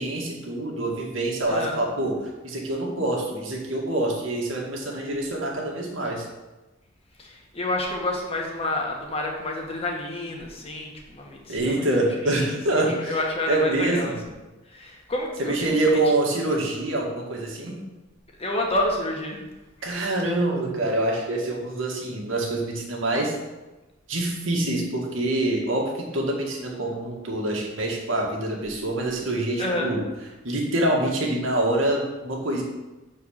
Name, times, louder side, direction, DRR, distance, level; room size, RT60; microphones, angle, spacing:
voice 1, 0.0-6.3 11.5-13.2 13.5-14.2 15.4-17.8 19.8-23.4 24.1-30.0 30.4-32.6, right 2 dB, 75° right, -1 dB, 1.9 m, -25 dB
voice 2, 1.5-1.8 7.2-14.1 14.7-15.8 18.4-19.5 29.6-29.9, left 1 dB, 30° left, 0 dB, 1.5 m, -29 dB
7.3 x 4.6 x 6.5 m, 1.1 s
head